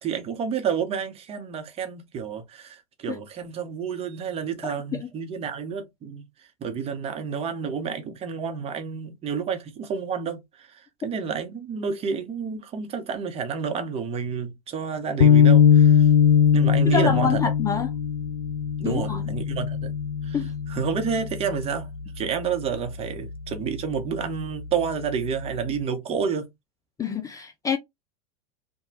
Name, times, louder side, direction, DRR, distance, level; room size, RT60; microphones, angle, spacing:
voice 1, 0.0-6.2 6.6-16.1 16.5-17.4 18.8-19.9 20.2-20.4 20.7-21.9 22.2-26.5, right 6 dB, 30° right, 0.8 m, -29 dB
voice 2, 4.6-5.1 16.8-17.9 18.8-19.2 20.3-20.5 27.0-27.8, left 6 dB, 20° left, 0.4 m, -27 dB
sound 1, 15.2-21.6, left 8 dB, 80° left, 0.6 m, -20 dB
2.9 x 2.2 x 2.8 m
hypercardioid pair, 95°, 19 cm